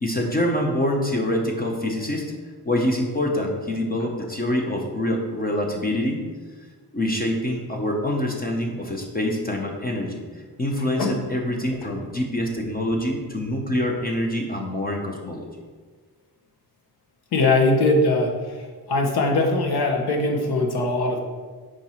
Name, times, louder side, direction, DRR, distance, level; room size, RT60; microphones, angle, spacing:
voice 1, 0.0-2.3 2.6-6.2 6.9-10.2 10.6-15.5, left 1 dB, 25° left, 1 dB, 0.7 m, -25 dB
voice 2, 17.3-18.6 18.9-21.2, left 2 dB, 80° left, 2 dB, 1.2 m, -21 dB
4.8 x 4.5 x 5.5 m, 1.5 s
wide cardioid pair, 150°, 38 cm